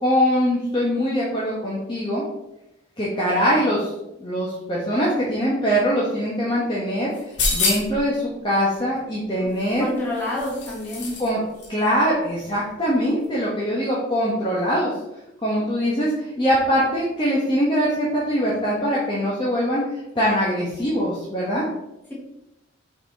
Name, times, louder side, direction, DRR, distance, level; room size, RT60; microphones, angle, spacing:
voice 1, 0.0-2.2 3.0-3.9 4.2-7.1 7.5-9.9 11.2-11.4 11.7-14.9 15.4-21.6, equal, 25° left, -6 dB, 1.1 m, -22 dB
sound 1, 7.1-8.1 9.6-11.3 11.6-11.7, left 3 dB, 65° left, 1.6 m, -27 dB
voice 2, 9.8-11.1, left 1 dB, 10° left, -7 dB, 2.1 m, -27 dB
5.8 x 4.3 x 4.1 m, 0.90 s
head